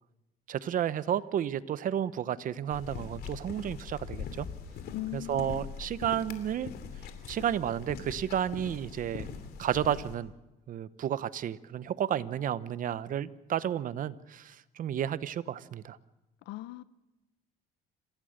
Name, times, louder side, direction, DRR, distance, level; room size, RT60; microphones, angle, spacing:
voice 1, 0.5-4.5 5.1-6.7 7.3-9.3 9.6-10.3 10.7-16.0, right 10 dB, 55° right, 0.9 m, -32 dB
sound 1, 2.7-10.2, left 7 dB, 70° left, 2.8 m, -42 dB
voice 2, 4.9-5.7 16.5-16.8, left 15 dB, 85° left, 0.9 m, -38 dB
27.5 x 15.0 x 6.6 m
cardioid pair, 110°, 17 cm